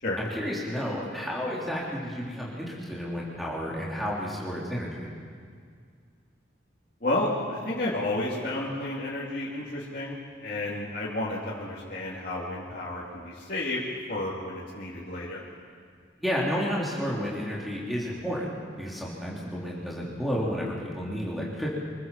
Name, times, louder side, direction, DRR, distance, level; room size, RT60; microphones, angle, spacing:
voice 1, 0.2-5.1 16.2-21.7, equal, ahead, -6 dB, 3.9 m, -31 dB
voice 2, 7.0-13.8 14.1-15.4, left 2 dB, 45° left, -8 dB, 3.1 m, -31 dB
26.0 x 19.0 x 7.6 m, 2.1 s
head